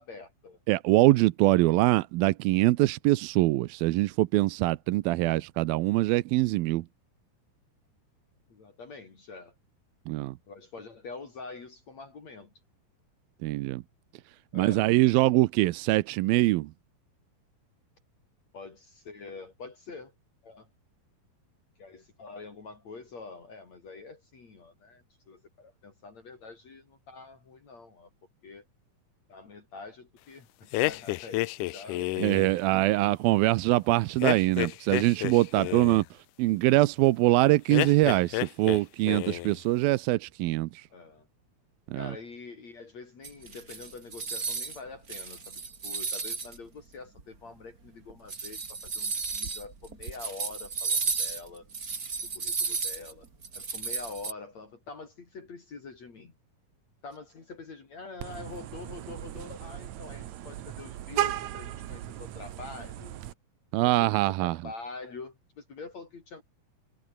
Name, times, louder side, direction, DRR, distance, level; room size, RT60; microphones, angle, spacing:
voice 1, 0.0-0.6 1.5-1.7 8.5-9.5 10.5-12.5 14.5-14.9 18.5-20.1 20.4-20.7 21.8-28.1 28.4-28.6 29.3-32.1 35.6-36.0 40.9-41.3 41.9-51.7 52.3-53.3 53.5-56.3 57.0-63.2 63.8-66.4, left 4 dB, 50° left, 5.0 m, -45 dB
voice 2, 0.7-6.9 10.1-10.4 13.4-13.8 14.5-16.7 32.2-36.0 36.4-40.9 41.9-42.1 63.7-64.6, right 18 dB, 80° right, 2.5 m, -23 dB
sound 1, 30.7-32.6 34.2-36.0 37.7-38.8 39.1-39.6, left 19 dB, 80° left, 1.9 m, -30 dB
sound 2, 43.2-44.8 45.1-46.6 47.2-47.3 48.1-54.3, right 4 dB, 25° right, 2.6 m, -33 dB
Vehicle horn car horn honking, 58.2-63.3, right 12 dB, 60° right, 2.2 m, -36 dB
omnidirectional pair, 4.2 m